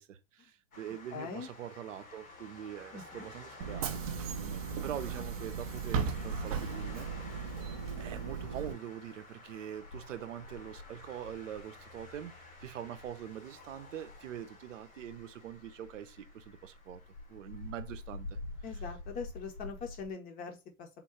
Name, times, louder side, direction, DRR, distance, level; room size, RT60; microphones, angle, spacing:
voice 1, 0.0-3.9 4.4-7.5 8.0-17.0 17.3-18.4, right 10 dB, 65° right, 0.7 m, -44 dB
sound 1, 0.7-20.1, left 2 dB, 85° left, 1.7 m, -48 dB
voice 2, 1.1-1.5 2.9-3.2 18.6-20.9, left 5 dB, 20° left, 0.7 m, -42 dB
Bus / Engine, 3.6-8.7, right 6 dB, 30° right, 0.4 m, -36 dB
3.7 x 2.3 x 4.3 m
hypercardioid pair, 120°, 41 cm